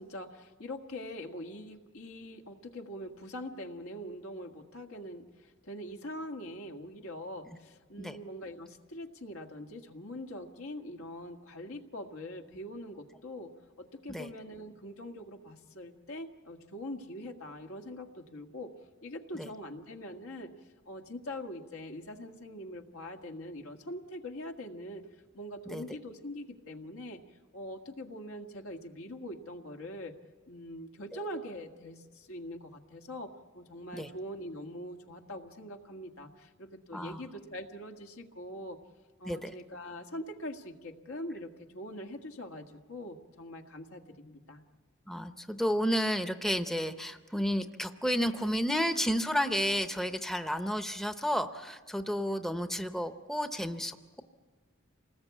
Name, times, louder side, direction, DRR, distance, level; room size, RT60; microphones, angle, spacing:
voice 1, 0.0-13.5 13.8-18.7 19.0-20.5 20.8-25.1 25.3-27.2 27.5-30.1 30.5-38.8 39.2-44.6, left 1 dB, 80° left, 4 dB, 1.7 m, -43 dB
voice 2, 45.1-54.2, equal, ahead, 8 dB, 0.7 m, -31 dB
27.5 x 19.5 x 8.3 m, 1.4 s
head